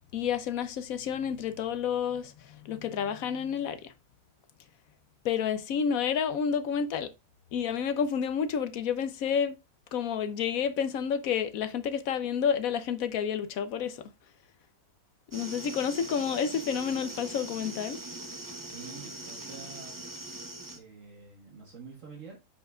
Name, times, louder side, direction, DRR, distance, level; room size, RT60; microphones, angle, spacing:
voice 1, 0.1-3.9 5.2-7.1 7.5-9.6 9.9-14.0 15.3-18.0, left 7 dB, 70° left, 1.1 m, -30 dB
sound 1, 15.3-20.8, right 2 dB, 15° right, 0.7 m, -41 dB
voice 2, 18.6-20.0 20.7-22.4, right 5 dB, 55° right, 1.7 m, -47 dB
8.6 x 5.5 x 2.3 m
omnidirectional pair, 1.6 m